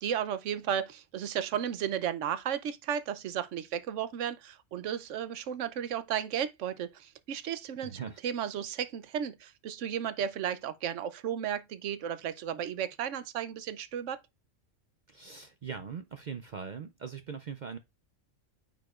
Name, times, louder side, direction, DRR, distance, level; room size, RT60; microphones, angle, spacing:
voice 1, 0.0-14.2, right 9 dB, 75° right, 1.0 m, -34 dB
voice 2, 7.8-8.2 15.1-17.8, right 6 dB, 55° right, 0.5 m, -41 dB
8.8 x 4.8 x 2.4 m
omnidirectional pair, 1.3 m